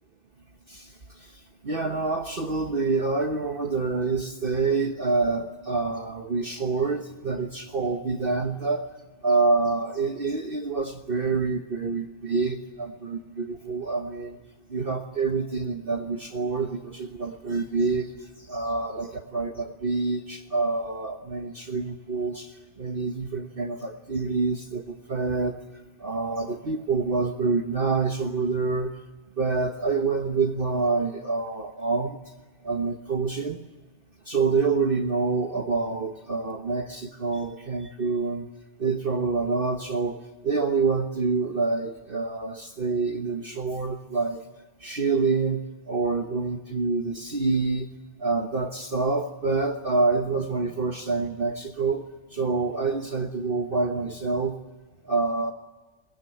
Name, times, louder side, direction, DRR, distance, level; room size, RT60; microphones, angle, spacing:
voice 1, 1.6-8.8 9.2-14.4 14.7-18.1 18.5-22.5 22.8-25.6 26.0-28.9 29.4-32.2 32.6-33.6 34.3-38.5 38.8-44.4 44.8-45.6 45.9-47.9 48.2-52.0 52.3-54.6 55.1-55.5, right 4 dB, 45° right, 4 dB, 1.4 m, -27 dB
23.0 x 20.5 x 9.2 m, 1.3 s
omnidirectional pair, 1.4 m